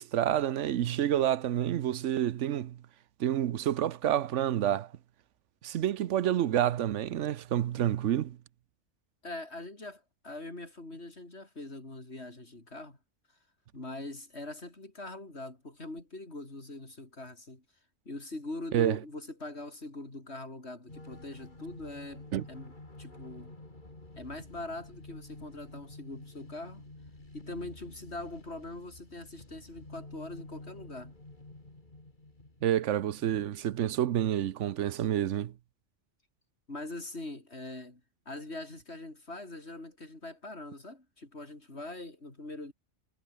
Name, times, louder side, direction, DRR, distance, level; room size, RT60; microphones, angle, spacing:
voice 1, 0.0-2.8 3.2-4.9 5.6-8.4 18.7-19.0 22.3-22.4 32.6-35.5, right 11 dB, 85° right, 1.1 m, -28 dB
voice 2, 9.2-13.0 13.7-17.6 18.1-23.5 24.2-26.8 27.3-31.1 36.7-42.7, left 2 dB, 65° left, 5.2 m, -42 dB
sound 1, 20.9-34.1, left 2 dB, 40° left, 3.8 m, -50 dB
omnidirectional pair, 1.2 m